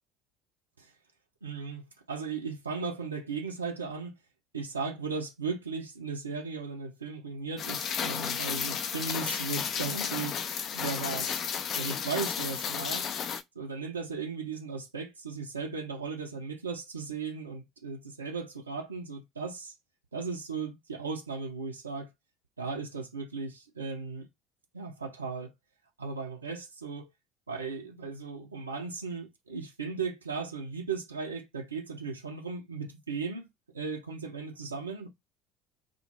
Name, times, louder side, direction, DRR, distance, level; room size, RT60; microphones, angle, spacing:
voice 1, 1.4-4.1 4.5-10.4 10.7-11.4 11.8-13.1 13.6-19.7 20.1-22.1 22.6-24.3 24.7-25.5 26.0-27.1 27.5-33.5 33.7-35.1, right 4 dB, 85° right, 0.4 m, -36 dB
Rain, 7.6-13.4, left 7 dB, 45° left, 0.3 m, -33 dB
2.1 x 2.1 x 2.8 m
figure-of-eight pair, 60°, 0 cm